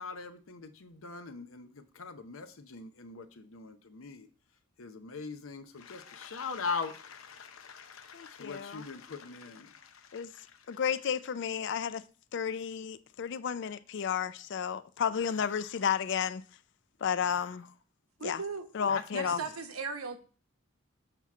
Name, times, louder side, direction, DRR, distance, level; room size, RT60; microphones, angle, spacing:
voice 1, 0.0-4.3 4.8-10.4 10.7-10.8 15.2-15.6 17.2-17.6 18.9-19.5, left 5 dB, 75° left, 0.7 m, -41 dB
voice 2, 8.1-8.9 10.1-10.3 10.7-12.0 12.3-16.4 17.0-17.6 18.2-18.4 18.7-19.4, left 7 dB, 55° left, 0.4 m, -32 dB
voice 3, 18.2-18.7 19.1-20.2, right 4 dB, 90° right, 1.0 m, -37 dB
7.9 x 2.9 x 6.0 m
head